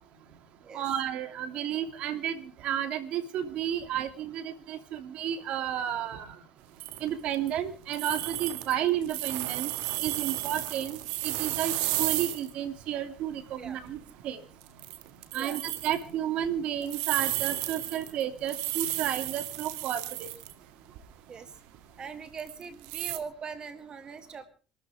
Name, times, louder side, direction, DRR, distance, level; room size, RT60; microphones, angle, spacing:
voice 1, 0.7-6.3 7.0-9.7 10.0-11.7 12.0-14.0 14.2-14.4 15.3-20.3, right 10 dB, 65° right, 8 dB, 2.8 m, -32 dB
sound 1, 6.8-7.6 7.9-12.5 12.8-12.9 13.5-13.6 14.0-14.2 14.6-16.0 16.8-20.5 20.9-21.0 22.4-23.2, right 15 dB, 85° right, 2.0 m, -33 dB
voice 2, 21.9-24.4, right 5 dB, 40° right, 9 dB, 2.1 m, -42 dB
27.0 x 13.5 x 3.6 m, 0.38 s
supercardioid pair, 85°, 2 cm